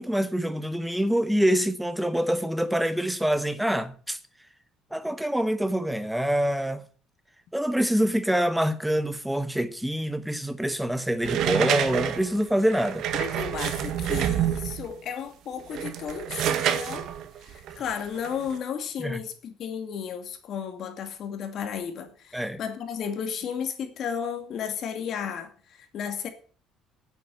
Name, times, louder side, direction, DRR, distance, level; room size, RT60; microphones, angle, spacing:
voice 1, 0.0-4.2 4.9-6.8 7.5-13.1 19.0-19.2 22.3-22.6, equal, 5° right, 1.2 m, -25 dB
sound 1, 11.2-14.9 15.6-18.6, right 10 dB, 65° right, 1.7 m, -28 dB
voice 2, 13.2-17.1 17.4-26.3, left 7 dB, 50° left, 2.4 m, -34 dB
9.8 x 8.9 x 8.4 m
cardioid pair, 130°, 0 cm